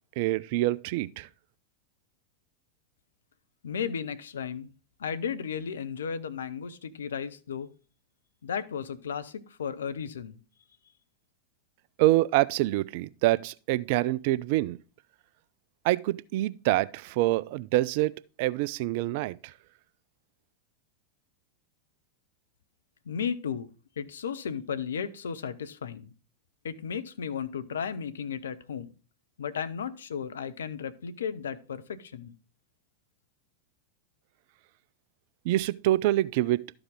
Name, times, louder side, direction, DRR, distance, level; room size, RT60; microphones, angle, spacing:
voice 1, 0.2-1.3 12.0-14.8 15.8-19.5 35.4-36.6, right 16 dB, 50° right, 0.3 m, -26 dB
voice 2, 3.6-4.7 5.0-7.7 8.4-10.4 23.1-23.7 24.0-26.1 26.6-28.9 29.4-32.3, left 7 dB, 65° left, 0.6 m, -34 dB
12.5 x 4.9 x 3.7 m
figure-of-eight pair, 90°, 0 cm